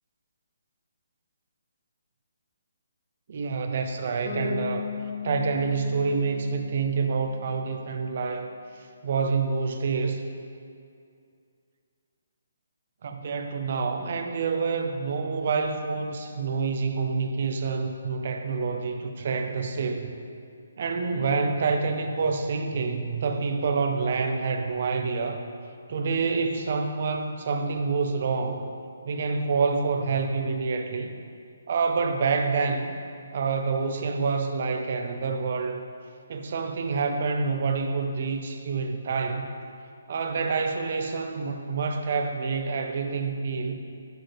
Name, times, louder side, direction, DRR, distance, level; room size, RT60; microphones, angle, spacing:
voice 1, 3.3-4.8 5.2-8.5 9.0-10.2 13.0-20.1 20.8-25.4 25.9-28.6 29.0-31.1 31.7-33.0 33.3-35.8 36.3-39.5 40.1-43.8, right 4 dB, 40° right, 6 dB, 0.4 m, -27 dB
Bass guitar, 4.2-8.1, left 5 dB, 40° left, 0.5 m, -36 dB
7.8 x 4.3 x 3.3 m, 2.4 s
hypercardioid pair, 175°, 0 cm